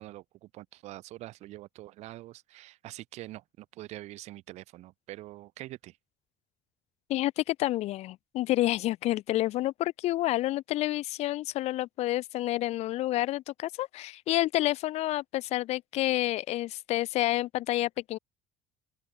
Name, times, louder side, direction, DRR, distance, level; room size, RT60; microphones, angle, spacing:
voice 1, 0.0-6.0, right 16 dB, 60° right, 6.9 m, -45 dB
voice 2, 7.1-18.2, left 16 dB, 55° left, 1.8 m, -29 dB
open air
cardioid pair, 175°, 13 cm